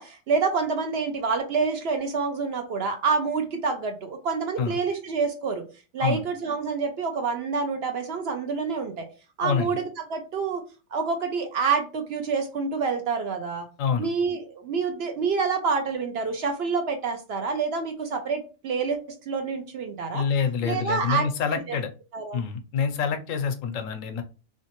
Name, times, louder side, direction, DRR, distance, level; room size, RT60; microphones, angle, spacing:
voice 1, 0.0-5.6 5.9-9.1 9.4-10.6 10.9-13.7 14.0-19.0 19.3-20.2 20.6-21.8 22.1-22.4, right 5 dB, 60° right, 5 dB, 0.7 m, -27 dB
voice 2, 9.4-9.8 13.8-14.1 20.1-21.9 22.3-24.2, left 6 dB, 80° left, 8 dB, 1.0 m, -27 dB
3.1 x 2.7 x 2.9 m, 0.32 s
omnidirectional pair, 1.3 m